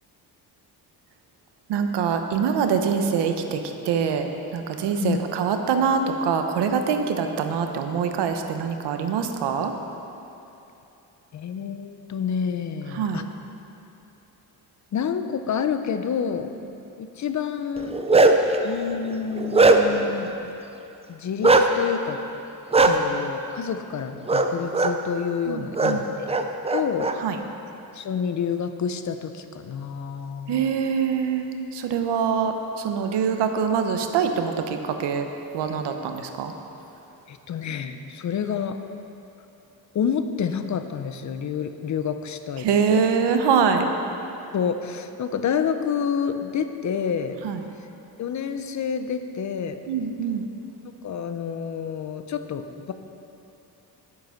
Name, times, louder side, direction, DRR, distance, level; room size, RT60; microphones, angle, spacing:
voice 1, 1.7-3.6 3.8-4.3 4.5-9.7 12.9-13.3 22.8-23.0 25.5-26.0 27.2-27.4 30.5-32.5 32.8-35.3 35.5-36.5 42.6-43.9 47.4-47.6 49.9-50.4, right 6 dB, 90° right, 6 dB, 1.0 m, -24 dB
voice 2, 11.3-13.2 14.9-16.5 17.0-17.9 18.6-20.5 21.1-22.2 22.9-27.1 27.9-30.6 37.3-38.8 39.9-43.0 44.5-47.4 48.2-49.8 51.0-52.9, left 7 dB, 45° left, 9 dB, 0.7 m, -28 dB
Bark, 17.8-18.5 19.1-20.1 21.4-21.6 22.7-22.9 24.3-24.5 24.7-24.9 25.7-25.9 26.3-27.1, right 3 dB, 15° right, 0.5 m, -17 dB
10.5 x 9.3 x 5.7 m, 2.9 s
cardioid pair, 130°, 40 cm